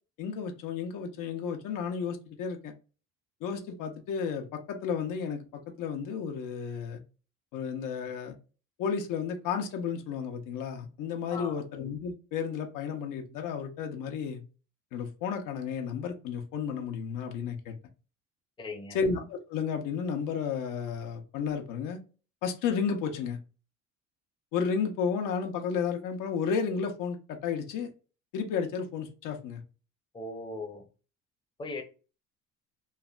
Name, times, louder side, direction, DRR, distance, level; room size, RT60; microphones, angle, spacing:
voice 1, 0.2-2.7 3.4-5.4 5.8-7.0 7.5-8.4 8.8-14.4 14.9-17.7 18.9-22.0 22.4-23.4 24.5-27.9 28.3-29.6, left 6 dB, 75° left, 0.7 m, -32 dB
voice 2, 11.3-11.6 18.6-19.0 30.1-30.8 31.6-31.8, left 3 dB, 15° left, 0.6 m, -38 dB
3.2 x 2.1 x 2.3 m
cardioid pair, 105°, 32 cm